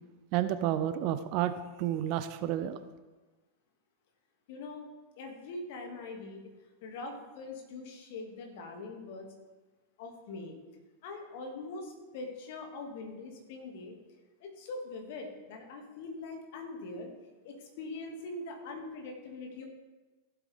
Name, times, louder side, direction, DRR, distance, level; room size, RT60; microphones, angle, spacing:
voice 1, 0.3-1.5 1.8-2.8, right 12 dB, 45° right, 11 dB, 0.6 m, -30 dB
voice 2, 4.5-4.9 5.2-6.4 6.8-9.3 10.0-10.5 11.0-14.0 14.4-17.1 17.4-19.6, left 3 dB, 50° left, 2 dB, 2.2 m, -42 dB
15.0 x 8.2 x 3.5 m, 1.2 s
figure-of-eight pair, 90°, 0 cm